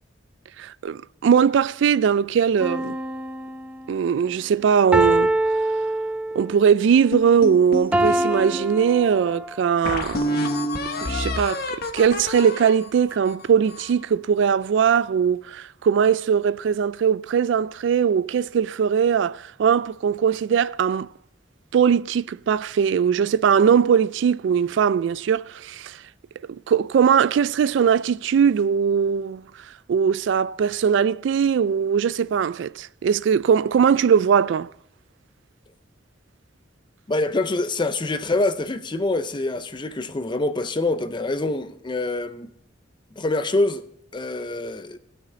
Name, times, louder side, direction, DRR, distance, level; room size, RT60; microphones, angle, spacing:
voice 1, 0.6-3.0 3.9-5.3 6.4-10.5 11.0-21.1 21.7-26.0 26.7-29.4 29.9-34.7, right 7 dB, 65° right, 0.3 m, -20 dB
sound 1, 2.6-3.9 4.9-6.6 7.9-9.6 10.3-10.4, right 1 dB, 5° right, 0.8 m, -24 dB
sound 2, 7.1-8.7 9.2-9.3 9.8-14.0, left 1 dB, 50° left, 1.1 m, -28 dB
voice 2, 37.1-42.5 43.2-43.8 44.1-45.0, left 2 dB, 25° left, 0.6 m, -25 dB
17.5 x 6.4 x 3.9 m
head